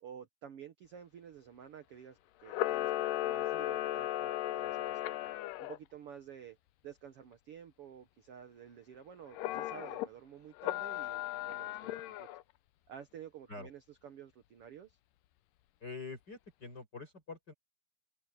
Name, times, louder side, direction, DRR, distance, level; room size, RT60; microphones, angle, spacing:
voice 1, 0.0-5.2 5.6-6.6 6.8-12.3 12.9-15.0, right 8 dB, 85° right, 1.2 m, -51 dB
Camera, 2.5-5.8 9.3-10.1 10.6-12.4, left 15 dB, 75° left, 2.2 m, -36 dB
voice 2, 15.8-17.5, left 4 dB, 25° left, 5.2 m, -45 dB
omnidirectional pair, 4.3 m